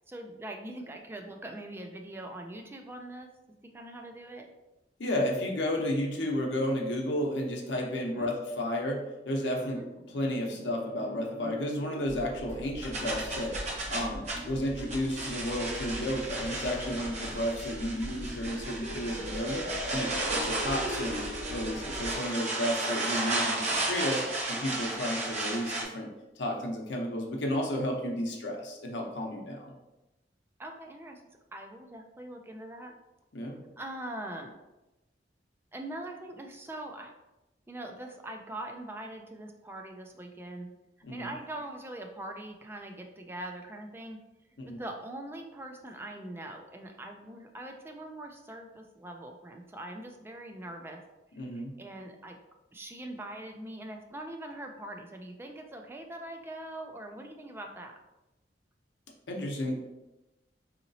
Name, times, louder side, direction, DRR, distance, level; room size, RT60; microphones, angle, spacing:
voice 1, 0.1-3.3 3.7-4.5 8.1-8.3 9.7-9.9 14.4-14.6 18.0-18.1 19.9-20.2 24.5-24.7 30.6-31.2 31.5-32.9 33.8-34.5 35.7-37.1 37.7-40.7 41.1-44.2 44.6-51.0 51.3-52.4 52.7-57.9, right 1 dB, 15° right, 3 dB, 0.3 m, -42 dB
voice 2, 5.0-9.8 10.1-21.2 21.5-24.2 24.5-26.1 26.4-29.7 33.3-33.6 41.0-41.3 44.6-44.8 51.4-51.7 59.3-59.9, left 1 dB, 85° left, 1 dB, 0.7 m, -32 dB
sound 1, 10.1-24.1, equal, 85° right, 0.5 m, -43 dB
sound 2, 12.0-22.1, equal, 20° left, 1.3 m, -44 dB
sound 3, 12.8-25.8, right 2 dB, 40° right, 0.8 m, -34 dB
3.9 x 2.9 x 2.7 m, 1.0 s
head